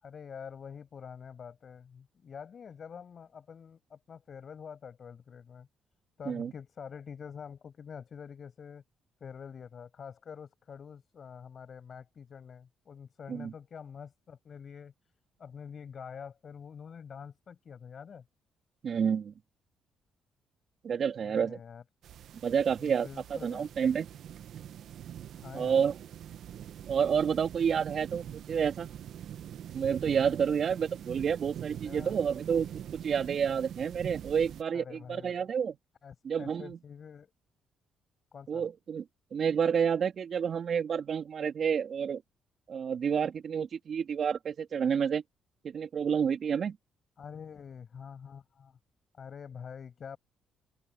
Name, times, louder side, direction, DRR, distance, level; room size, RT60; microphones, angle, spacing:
voice 1, 0.0-5.7 6.2-8.8 9.2-14.9 15.4-18.2 21.2-21.8 22.8-23.7 25.3-25.8 31.9-32.1 34.7-35.5 36.0-37.3 38.3-38.7 47.2-48.8 49.2-50.2, left 7 dB, 50° left, 7.1 m, -46 dB
voice 2, 18.8-19.3 20.8-21.6 22.4-24.1 25.5-25.9 26.9-28.9 29.7-32.7 32.9-35.8 36.2-36.8 38.5-39.0 39.3-42.2 42.7-45.2 45.6-46.8, right 7 dB, 55° right, 3.1 m, -29 dB
sound 1, 22.0-34.6, right 10 dB, 70° right, 1.3 m, -44 dB
open air
cardioid pair, 90°, 0 cm